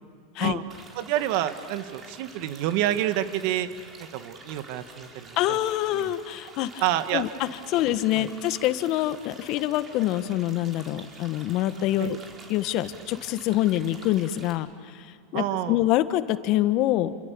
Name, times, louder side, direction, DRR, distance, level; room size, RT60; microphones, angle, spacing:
sound 1, 0.7-14.5, right 3 dB, 30° right, 4.7 m, -48 dB
voice 1, 0.9-3.7 4.0-5.6 5.9-6.1 6.8-7.2 7.7-7.9 8.1-8.3 12.0-12.1 15.3-15.8, right 12 dB, 60° right, 10 dB, 1.7 m, -28 dB
voice 2, 5.4-6.8 7.1-7.3 7.7-12.2 12.5-17.1, left 14 dB, 50° left, 12 dB, 1.4 m, -25 dB
29.0 x 27.0 x 7.0 m, 2.3 s
hypercardioid pair, 105°, 0 cm